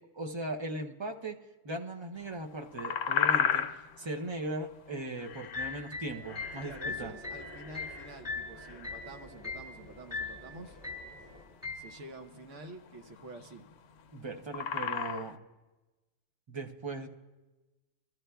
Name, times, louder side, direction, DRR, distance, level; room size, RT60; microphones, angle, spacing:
voice 1, 0.1-1.4 1.6-3.6 4.0-7.1 14.1-15.4 16.5-17.1, right 2 dB, 30° right, 3 dB, 0.5 m, -38 dB
sound 1, 2.4-15.3, left 8 dB, 65° left, 0.8 m, -35 dB
sound 2, 5.3-9.1 9.4-9.7 10.1-10.5 10.8-11.2 11.6-11.9, left 4 dB, 5° right, 1.9 m, -39 dB
sound 3, 6.1-11.4, left 1 dB, 60° right, 4.4 m, -52 dB
voice 2, 6.6-10.8 11.7-13.6, right 2 dB, 80° right, 5 dB, 1.3 m, -48 dB
23.0 x 13.5 x 2.3 m, 1.1 s
omnidirectional pair, 1.2 m